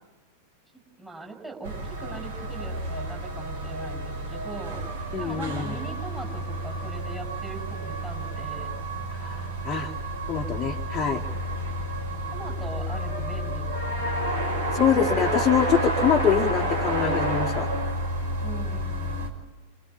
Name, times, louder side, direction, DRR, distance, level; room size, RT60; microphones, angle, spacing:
voice 1, 1.0-4.8 5.2-8.7 11.6-11.9 12.3-14.6 18.4-19.3, right 3 dB, 5° right, 2 dB, 6.8 m, -41 dB
sound 1, 1.6-19.3, right 1 dB, 65° right, 5.5 m, -30 dB
voice 2, 5.1-5.8 9.2-9.9 10.3-11.2 14.7-17.7, left 7 dB, 25° left, 0 dB, 2.1 m, -24 dB
28.0 x 27.5 x 7.4 m, 1.1 s
figure-of-eight pair, 90°, 0 cm